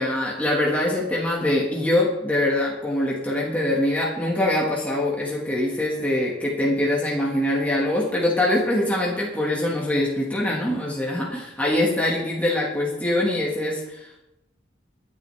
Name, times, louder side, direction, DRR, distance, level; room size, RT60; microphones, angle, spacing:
voice 1, 0.0-14.2, left 1 dB, 10° left, -4 dB, 1.8 m, -23 dB
23.0 x 8.7 x 3.4 m, 0.90 s
head